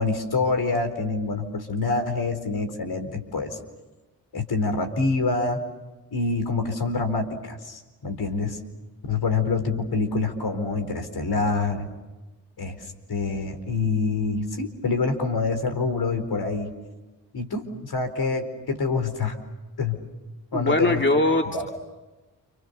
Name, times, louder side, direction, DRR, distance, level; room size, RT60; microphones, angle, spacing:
voice 1, 0.0-3.6 4.3-5.6 6.1-8.6 9.1-11.9 12.6-16.7 17.3-19.4 19.8-20.0 20.5-21.0 21.5-21.6, left 3 dB, 50° left, 7 dB, 4.5 m, -26 dB
voice 2, 20.5-21.7, left 2 dB, 25° left, 3 dB, 2.7 m, -22 dB
30.0 x 28.5 x 6.9 m, 1.1 s
hypercardioid pair, 40°, 47 cm